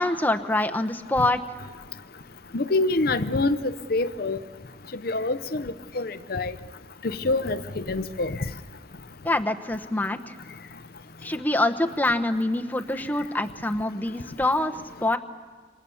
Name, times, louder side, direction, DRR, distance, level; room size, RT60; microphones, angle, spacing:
voice 1, 0.0-1.4 9.2-10.3 11.2-14.7 15.0-15.2, left 2 dB, 10° left, 6 dB, 1.0 m, -25 dB
voice 2, 2.5-4.4 5.0-6.5 7.0-8.4, left 2 dB, 55° left, 12 dB, 0.7 m, -26 dB
27.5 x 25.0 x 7.1 m, 1.5 s
head